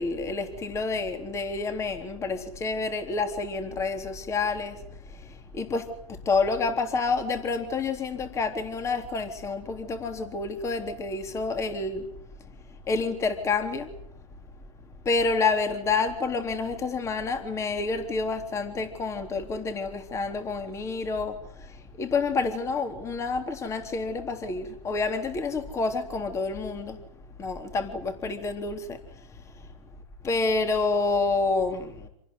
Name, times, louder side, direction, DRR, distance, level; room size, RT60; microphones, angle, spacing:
voice 1, 0.0-12.1 12.4-12.5 12.9-13.9 15.0-27.0 27.4-29.7 30.2-32.1, left 4 dB, 15° left, 3.6 m, -29 dB
27.5 x 19.0 x 9.8 m
hypercardioid pair, 140°, 20 cm